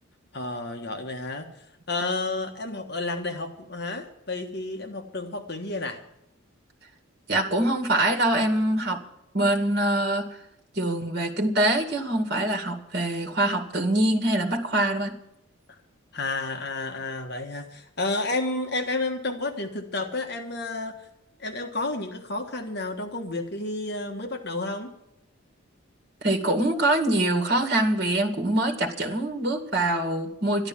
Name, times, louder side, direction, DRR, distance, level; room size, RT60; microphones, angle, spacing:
voice 1, 0.3-1.5 1.9-6.0 16.1-20.9 21.4-24.9, left 2 dB, 50° left, 4 dB, 1.5 m, -31 dB
voice 2, 7.3-9.0 9.3-10.3 10.7-15.1 26.2-30.7, right 1 dB, 50° right, 4 dB, 2.2 m, -24 dB
12.5 x 11.5 x 7.3 m, 0.82 s
head